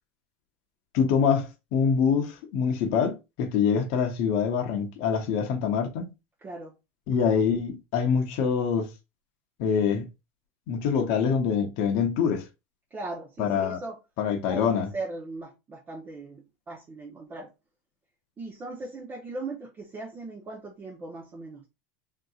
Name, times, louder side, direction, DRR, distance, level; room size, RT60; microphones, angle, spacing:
voice 1, 0.9-6.1 7.1-8.9 9.6-10.1 10.7-12.4 13.4-13.8 14.2-14.9, left 6 dB, 55° left, 0.8 m, -25 dB
voice 2, 6.4-6.7 12.9-14.0 14.5-17.5 18.4-21.7, right 2 dB, 25° right, 0.8 m, -38 dB
3.7 x 2.7 x 2.4 m
supercardioid pair, 135°, 8 cm